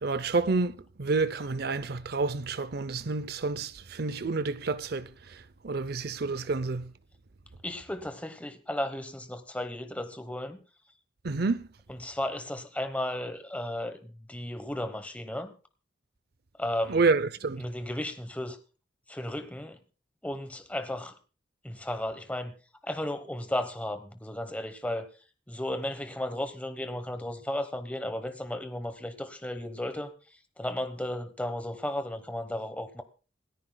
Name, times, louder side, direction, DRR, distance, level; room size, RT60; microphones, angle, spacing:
voice 1, 0.0-6.9 11.2-11.6 16.9-17.7, right 3 dB, 55° right, 0.6 m, -29 dB
voice 2, 7.6-10.6 12.0-15.5 16.6-17.0 17.6-18.6 19.1-19.8 20.2-21.1 21.6-22.5 22.8-25.1 25.5-30.1 30.6-33.0, left 1 dB, 5° left, 1.1 m, -34 dB
27.0 x 10.0 x 2.3 m
head